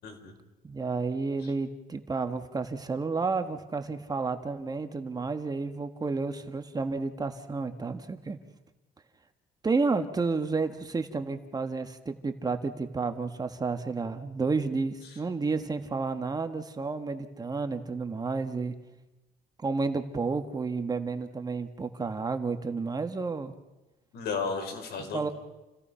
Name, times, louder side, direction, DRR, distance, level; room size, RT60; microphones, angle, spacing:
voice 1, 0.0-0.3 1.4-1.5 15.0-15.2 24.1-25.3, left 5 dB, 75° left, 4 dB, 5.2 m, -34 dB
voice 2, 0.6-8.4 9.6-18.7 19.6-23.5 25.1-25.3, right 4 dB, 20° right, 7 dB, 1.6 m, -31 dB
29.5 x 17.0 x 5.7 m, 1.1 s
cardioid pair, 110°, 17 cm